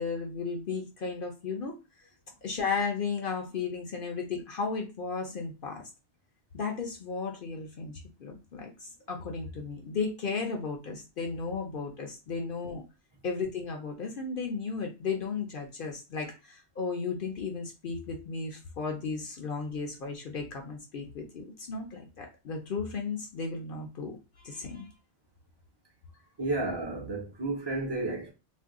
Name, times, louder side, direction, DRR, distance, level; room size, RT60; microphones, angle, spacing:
voice 1, 0.0-1.8 2.4-5.8 6.5-12.8 13.2-24.2 24.4-24.9, left 4 dB, 55° left, 0.7 m, -34 dB
voice 2, 26.4-28.3, right 2 dB, 30° right, 0.6 m, -32 dB
2.6 x 2.2 x 3.5 m
omnidirectional pair, 1.2 m